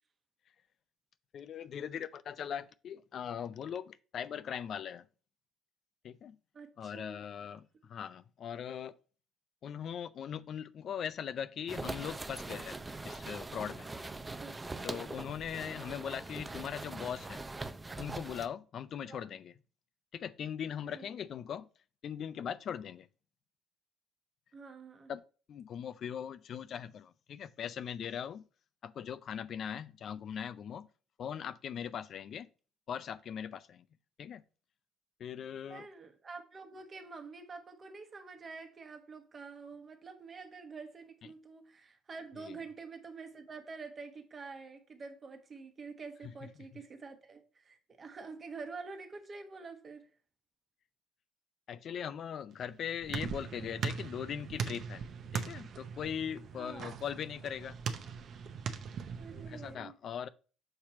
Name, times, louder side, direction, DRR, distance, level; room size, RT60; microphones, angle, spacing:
voice 1, 1.3-5.0 6.0-6.4 6.8-9.0 9.6-12.8 13.0-13.9 14.8-17.4 18.0-19.5 20.1-21.7 22.0-23.1 25.1-25.2 25.5-28.4 28.8-30.9 31.2-32.5 32.9-33.8 34.2-34.4 35.2-35.9 42.5-42.6 51.7-55.1 55.3-57.8 59.3-60.3, left 8 dB, 55° left, 0.4 m, -40 dB
voice 2, 6.5-7.3 14.4-14.5 19.0-19.3 20.9-21.2 24.5-25.1 35.7-50.1 56.6-56.9 59.2-59.9, right 4 dB, 35° right, 1.2 m, -47 dB
sound 1, 11.7-18.5, right 2 dB, 15° right, 0.5 m, -42 dB
sound 2, 52.5-59.8, right 6 dB, 55° right, 0.7 m, -40 dB
6.6 x 3.0 x 5.6 m
cardioid pair, 100°, 0 cm